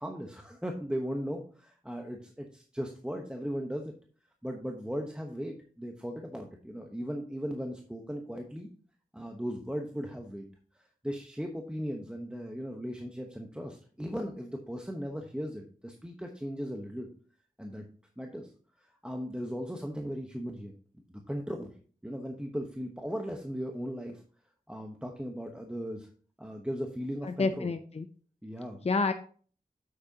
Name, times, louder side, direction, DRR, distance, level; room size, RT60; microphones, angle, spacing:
voice 1, 0.0-3.9 4.4-8.7 9.1-10.5 10.8-17.1 17.6-17.8 18.2-18.5 19.0-21.7 22.0-24.2 24.7-26.1 26.4-27.7 28.4-28.8, equal, 5° right, 2 dB, 1.1 m, -37 dB
voice 2, 27.2-28.1 28.8-29.1, left 3 dB, 40° left, 8 dB, 0.6 m, -28 dB
8.7 x 7.8 x 2.9 m, 0.43 s
wide cardioid pair, 60°, 15 cm